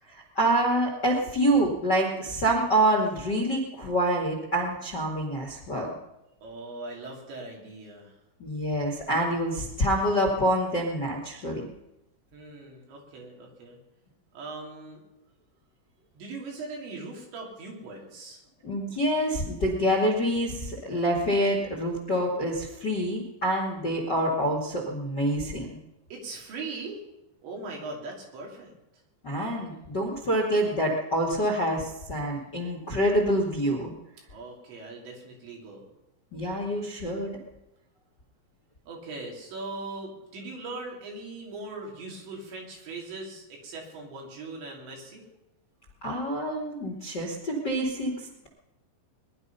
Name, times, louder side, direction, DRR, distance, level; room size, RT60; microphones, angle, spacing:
voice 1, 0.0-5.9 8.4-11.6 18.6-25.7 29.2-33.9 36.3-37.3 46.0-48.5, right 1 dB, 40° left, 1 dB, 1.7 m, -26 dB
voice 2, 6.4-8.1 12.3-13.8 14.3-15.0 16.2-18.4 26.1-27.1 27.4-28.8 34.3-35.9 38.9-45.2, right 3 dB, 75° right, -1 dB, 5.5 m, -40 dB
21.5 x 11.5 x 5.6 m, 0.92 s
omnidirectional pair, 5.3 m